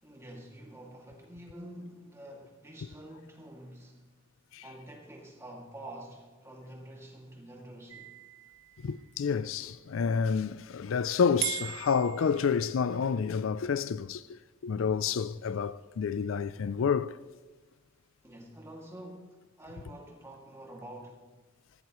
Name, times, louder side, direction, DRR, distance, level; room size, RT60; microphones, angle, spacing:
voice 1, 0.0-4.1 4.6-8.1 18.2-21.3, right 1 dB, 15° right, 2.3 m, -47 dB
sound 1, 7.9-9.5 11.4-13.0, right 13 dB, 75° right, 0.9 m, -39 dB
voice 2, 8.8-17.1, left 6 dB, 75° left, 0.4 m, -29 dB
18.5 x 15.0 x 3.1 m
head